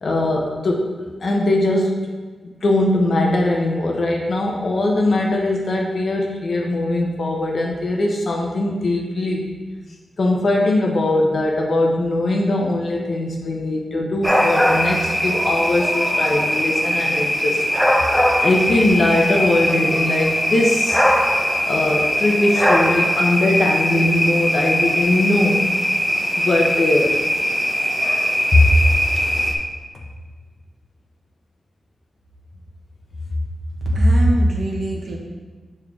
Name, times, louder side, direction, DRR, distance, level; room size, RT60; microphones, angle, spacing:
voice 1, 0.0-2.0 2.6-9.5 10.2-17.6 18.4-21.0 21.7-25.7 26.4-27.2 28.5-28.6, left 2 dB, 55° left, 0 dB, 0.8 m, -20 dB
sound 1, 14.2-29.5, equal, ahead, 0.8 m, -20 dB
voice 2, 33.8-35.2, equal, 85° right, -2 dB, 1.4 m, -18 dB
6.9 x 5.5 x 3.6 m, 1.3 s
wide cardioid pair, 155°, 0 cm